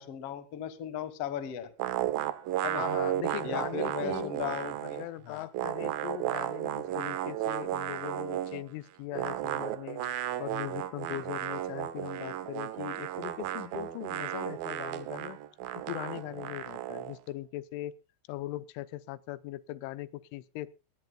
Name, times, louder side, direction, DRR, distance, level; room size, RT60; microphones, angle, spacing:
voice 1, 0.0-1.7 2.6-2.8 3.4-5.5, left 10 dB, 65° left, 12 dB, 1.5 m, -37 dB
sound 1, 1.8-5.1 5.3-8.7 9.1-17.2, right 12 dB, 75° right, 2.2 m, -34 dB
voice 2, 2.8-4.3 4.8-10.1 10.4-15.4 15.8-18.0 18.3-20.8, left 16 dB, 90° left, 16 dB, 3.3 m, -40 dB
20.0 x 18.0 x 2.3 m, 0.31 s
omnidirectional pair, 5.4 m